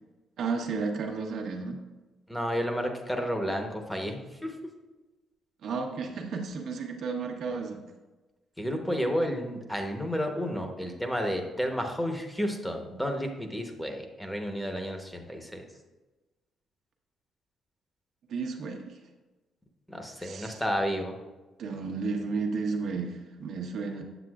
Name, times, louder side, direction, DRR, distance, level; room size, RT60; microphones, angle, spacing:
voice 1, 0.4-1.8 5.6-7.8 18.3-18.9 20.2-20.6 21.6-24.0, right 4 dB, 70° right, 2 dB, 1.1 m, -33 dB
voice 2, 2.3-4.5 8.6-15.6 19.9-21.2, equal, 5° left, 3 dB, 1.0 m, -31 dB
8.0 x 6.9 x 2.4 m, 1.2 s
cardioid pair, 90°, 0 cm